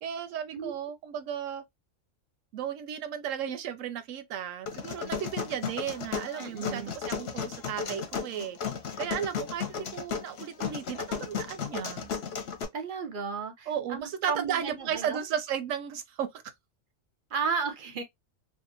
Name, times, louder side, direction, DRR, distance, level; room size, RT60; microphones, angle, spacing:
voice 1, 0.0-1.6 2.5-8.6 9.0-12.1 13.7-16.3, right 9 dB, 80° right, 1.0 m, -34 dB
sound 1, 4.7-12.6, left 6 dB, 60° left, 0.8 m, -34 dB
voice 2, 6.4-6.9 12.7-15.2 17.3-18.0, right 5 dB, 55° right, 0.6 m, -33 dB
2.7 x 2.3 x 2.5 m
omnidirectional pair, 1.3 m